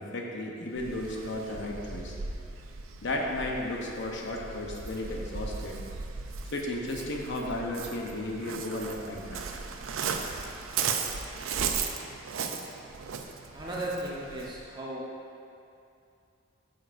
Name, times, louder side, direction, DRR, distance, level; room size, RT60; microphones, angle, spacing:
voice 1, 0.0-2.2 3.0-5.7 6.5-9.4, left 1 dB, 65° left, 0 dB, 0.8 m, -34 dB
Waves surf, 0.7-14.6, right 6 dB, 90° right, 0.5 m, -37 dB
voice 2, 13.5-15.1, right 1 dB, 20° right, -5 dB, 1.0 m, -36 dB
8.9 x 6.4 x 2.6 m, 2.6 s
head